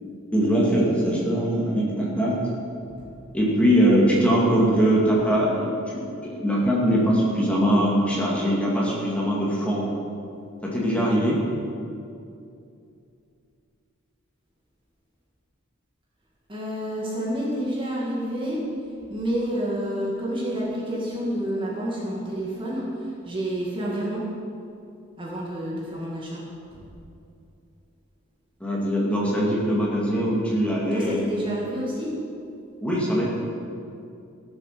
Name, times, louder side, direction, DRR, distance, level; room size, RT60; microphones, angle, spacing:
voice 1, 0.3-2.4 3.3-9.8 10.6-11.4 28.6-31.2 32.8-33.3, equal, 5° left, -5 dB, 2.2 m, -22 dB
voice 2, 16.5-18.7 19.1-24.2 25.2-26.4 26.7-26.8 30.9-32.2, equal, 25° right, -5 dB, 2.0 m, -29 dB
15.0 x 7.3 x 6.7 m, 2.6 s
head